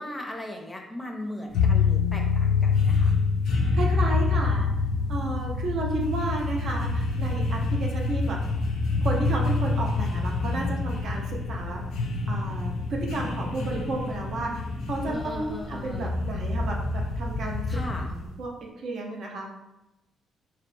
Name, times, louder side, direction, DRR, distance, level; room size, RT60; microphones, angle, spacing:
voice 1, 0.0-3.2 15.0-16.1 17.7-18.1, left 1 dB, 20° left, 1 dB, 0.5 m, -38 dB
sound 1, 1.5-18.3, left 4 dB, 80° left, 0.3 m, -26 dB
voice 2, 3.5-4.7 5.1-8.4 9.0-11.8 12.3-14.5 14.9-17.6 18.0-18.5 18.8-19.5, right 2 dB, 65° right, 0 dB, 0.5 m, -32 dB
2.8 x 2.1 x 2.5 m, 0.92 s
cardioid pair, 90°, 0 cm